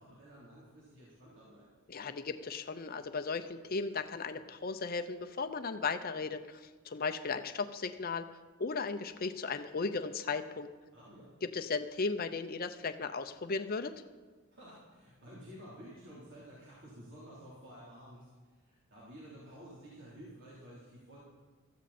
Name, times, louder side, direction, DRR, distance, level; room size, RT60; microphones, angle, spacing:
voice 1, 0.0-1.7 10.9-11.3 14.5-18.3 18.7-21.2, equal, 55° right, -8 dB, 3.7 m, -52 dB
voice 2, 1.9-8.3 8.6-10.7 11.4-13.9, left 4 dB, 45° left, 8 dB, 0.7 m, -36 dB
16.5 x 14.0 x 4.3 m, 1.4 s
head